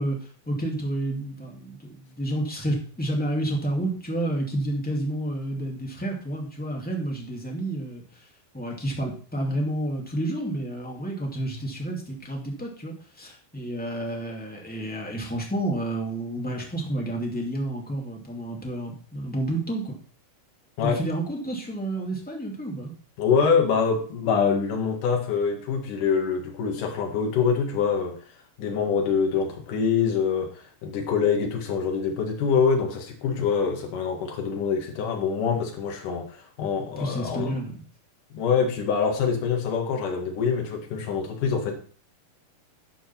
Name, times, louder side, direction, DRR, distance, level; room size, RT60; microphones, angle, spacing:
voice 1, 0.0-8.3 8.5-19.9 20.8-22.9 37.0-37.8, right 1 dB, 5° left, -1 dB, 1.6 m, -30 dB
voice 2, 23.2-37.6 38.3-41.8, left 6 dB, 65° left, 2 dB, 3.3 m, -25 dB
11.5 x 5.3 x 5.9 m, 0.42 s
omnidirectional pair, 4.2 m